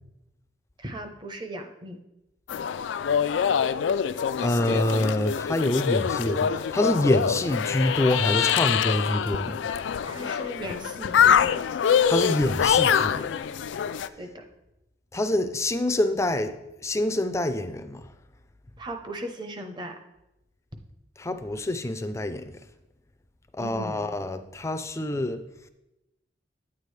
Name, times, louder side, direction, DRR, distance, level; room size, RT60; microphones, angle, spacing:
voice 1, 0.8-2.0 10.0-11.6 14.2-14.5 18.8-20.0 23.6-24.1, right 1 dB, 25° right, 5 dB, 0.8 m, -37 dB
sound 1, 2.5-14.1, left 8 dB, 85° left, 0.3 m, -25 dB
voice 2, 4.4-9.6 12.1-13.3 15.1-16.6 16.8-18.1 21.2-22.5 23.6-25.4, left 1 dB, 15° left, 9 dB, 0.4 m, -26 dB
9.6 x 8.3 x 3.3 m, 0.93 s
head